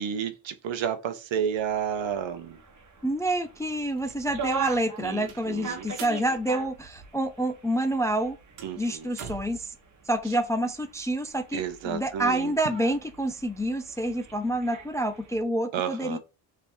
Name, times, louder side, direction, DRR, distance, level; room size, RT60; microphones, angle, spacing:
voice 1, 0.0-2.6 5.0-5.9 8.6-9.1 11.5-12.5 15.7-16.2, right 8 dB, 70° right, 0.9 m, -31 dB
sound 1, 1.5-15.4, right 5 dB, 40° right, 1.2 m, -42 dB
voice 2, 3.0-8.4 8.8-9.7 10.1-16.2, right 1 dB, 5° left, 0.3 m, -28 dB
sound 2, 3.1-3.2 3.5-7.4 7.7-9.6, right 6 dB, 90° right, 1.1 m, -46 dB
3.4 x 3.0 x 4.3 m
cardioid pair, 75°, 48 cm